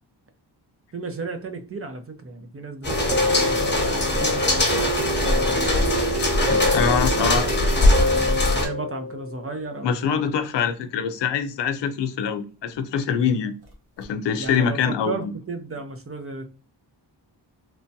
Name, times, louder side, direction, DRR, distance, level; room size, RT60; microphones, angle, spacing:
voice 1, 0.9-6.0 6.8-10.1 14.4-14.8 15.1-16.4, right 3 dB, 35° right, 0.5 m, -34 dB
sound 1, 2.8-8.7, left 2 dB, 25° left, 0.9 m, -22 dB
sound 2, 2.9-9.8 14.0-14.1 14.5-14.6, left 1 dB, 65° right, 1.0 m, -26 dB
voice 2, 6.7-7.5 9.8-13.5 14.0-15.3, left 7 dB, 75° left, 0.5 m, -24 dB
3.1 x 2.2 x 2.6 m
wide cardioid pair, 95°, 43 cm